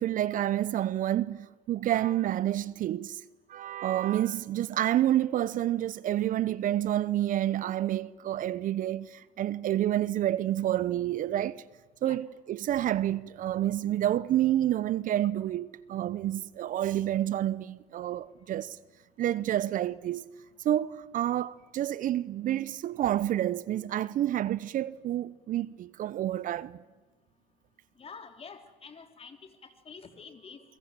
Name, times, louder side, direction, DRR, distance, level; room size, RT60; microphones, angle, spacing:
voice 1, 0.0-3.2 3.5-11.6 12.0-18.8 19.2-20.3 20.6-26.8, right 12 dB, 50° right, 0.8 m, -29 dB
voice 2, 28.0-30.6, left 5 dB, 35° left, 3.5 m, -48 dB
29.5 x 23.0 x 7.5 m
hypercardioid pair, 70°, 17 cm